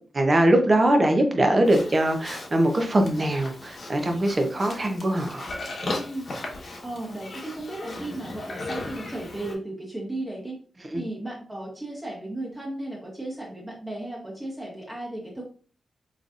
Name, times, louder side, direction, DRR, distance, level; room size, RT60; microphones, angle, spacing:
voice 1, 0.1-5.4 10.9-11.0, right 1 dB, 35° right, 4 dB, 0.8 m, -22 dB
Livestock farm animals working animals, 1.6-9.5, left 2 dB, 55° left, 1.1 m, -37 dB
voice 2, 5.9-6.3 6.8-10.6 10.9-15.4, right 1 dB, 15° right, -3 dB, 1.3 m, -35 dB
4.0 x 3.1 x 2.5 m, 0.41 s
cardioid pair, 75°, 0 cm